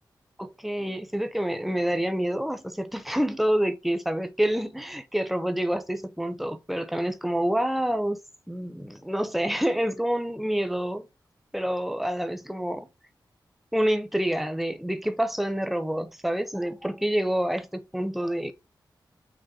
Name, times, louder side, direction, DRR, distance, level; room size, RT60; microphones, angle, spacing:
voice 1, 0.4-8.2 8.5-11.1 11.5-12.9 13.7-18.5, equal, ahead, 0.6 m, -27 dB
5.0 x 2.2 x 4.1 m
wide cardioid pair, 85°, 8 cm